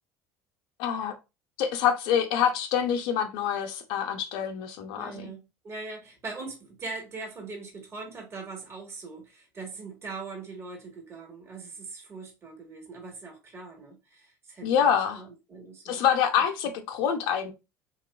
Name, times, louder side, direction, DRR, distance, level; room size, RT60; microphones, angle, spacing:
voice 1, 0.8-1.1 1.6-5.3 14.6-15.2 15.9-17.5, left 8 dB, 65° left, 0.6 m, -26 dB
voice 2, 4.9-16.5, right 3 dB, 30° right, 1.2 m, -41 dB
2.9 x 2.3 x 2.3 m
hypercardioid pair, 75°, 8 cm